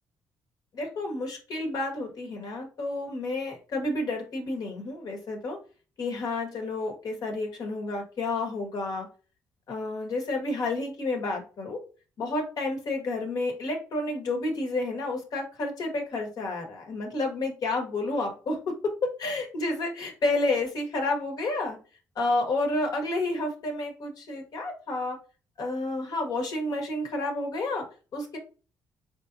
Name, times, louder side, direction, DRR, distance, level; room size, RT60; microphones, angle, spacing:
voice 1, 0.7-5.6 6.0-9.1 9.7-11.8 12.2-18.7 19.0-21.8 22.2-25.2 25.6-27.8 28.1-28.4, left 2 dB, 60° left, 2 dB, 1.4 m, -30 dB
4.0 x 3.5 x 2.6 m, 0.35 s
supercardioid pair, 65°, 7 cm